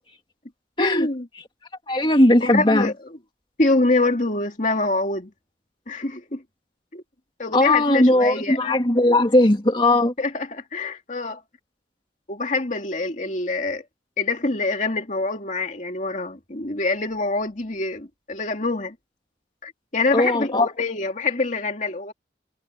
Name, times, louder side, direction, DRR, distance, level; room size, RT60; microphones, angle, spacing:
voice 1, 0.8-1.3 2.4-3.2 3.6-5.3 5.9-6.4 6.9-7.0 7.4-8.6 10.2-11.4 12.3-13.8 14.2-19.0 19.6-22.1, left 2 dB, 45° left, 2.5 m, -25 dB
voice 2, 1.9-2.9 7.5-10.1 20.1-20.7, left 1 dB, 25° left, 2.5 m, -18 dB
head